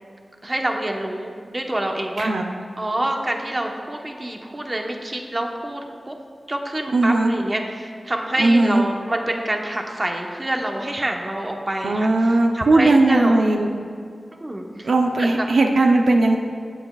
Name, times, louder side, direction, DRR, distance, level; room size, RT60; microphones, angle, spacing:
voice 1, 0.4-2.3 2.8-6.1 6.5-13.6 14.4-14.9 15.2-15.5, right 1 dB, 30° right, 2 dB, 1.0 m, -27 dB
voice 2, 6.9-7.3 8.4-8.8 11.8-13.7 14.8-16.4, right 2 dB, 75° right, 2 dB, 0.6 m, -17 dB
16.0 x 8.0 x 2.4 m, 2.3 s
wide cardioid pair, 75°, 0 cm